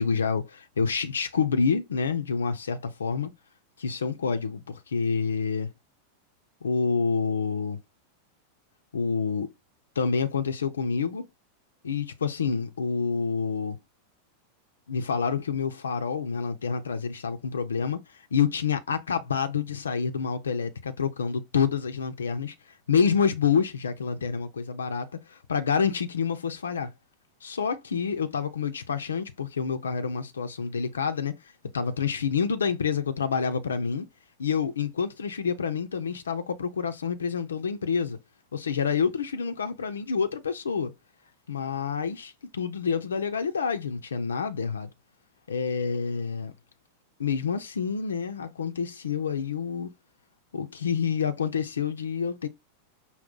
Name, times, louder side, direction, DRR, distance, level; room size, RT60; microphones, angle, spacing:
voice 1, 0.0-3.3 3.8-5.7 6.6-7.8 8.9-9.5 10.0-11.3 11.8-13.8 14.9-22.5 22.9-26.9 27.4-31.4 31.7-34.1 34.4-38.2 38.5-40.9 41.5-44.9 45.5-46.5 47.2-49.9 50.5-52.5, left 6 dB, 70° left, 0.6 m, -28 dB
5.5 x 2.2 x 3.7 m
figure-of-eight pair, 90°, 0 cm